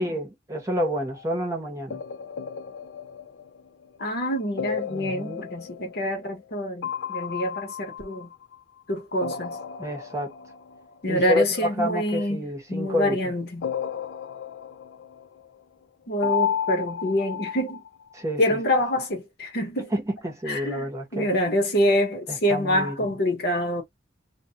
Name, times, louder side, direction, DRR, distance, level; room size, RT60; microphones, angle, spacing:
voice 1, 0.0-2.0 4.9-5.5 9.8-10.3 11.1-13.3 18.1-18.6 19.9-21.3 22.3-23.1, equal, 15° right, 0.9 m, -29 dB
sound 1, 0.8-1.4 1.9-4.0 4.6-6.6 6.8-8.8 9.2-11.0 13.6-15.5 16.2-18.2, left 8 dB, 75° left, 0.3 m, -33 dB
voice 2, 4.0-8.3 8.9-9.6 11.0-13.7 16.1-17.8 18.4-19.9 20.5-23.8, equal, 60° left, 1.0 m, -26 dB
2.3 x 2.2 x 2.7 m
head